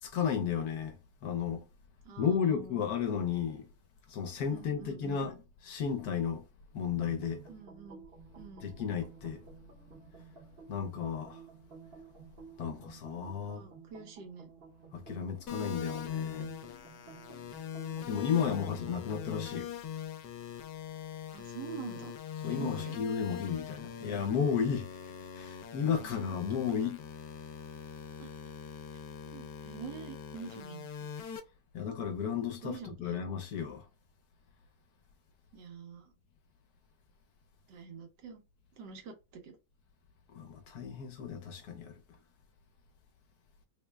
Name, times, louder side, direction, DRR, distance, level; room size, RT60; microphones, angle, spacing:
voice 1, 0.1-1.7 2.2-3.7 4.1-5.4 5.6-6.4 6.7-7.4 8.6-9.4 10.7-11.4 12.6-13.6 14.9-16.5 18.1-19.7 22.4-27.0 31.7-33.9 40.3-42.0, left 7 dB, 70° left, 1.2 m, -33 dB
voice 2, 2.0-2.8 4.5-5.3 7.5-8.0 8.4-8.7 13.4-14.5 18.5-18.8 21.3-22.1 22.4-23.5 26.0-26.4 28.2-28.3 29.2-31.1 32.6-33.2 35.5-36.1 37.7-38.4 38.7-39.6, right 5 dB, 85° right, 1.6 m, -46 dB
sound 1, 6.9-19.7, right 5 dB, 45° right, 0.9 m, -53 dB
sound 2, 15.5-31.4, left 8 dB, 90° left, 1.2 m, -42 dB
3.6 x 2.1 x 3.3 m
omnidirectional pair, 1.8 m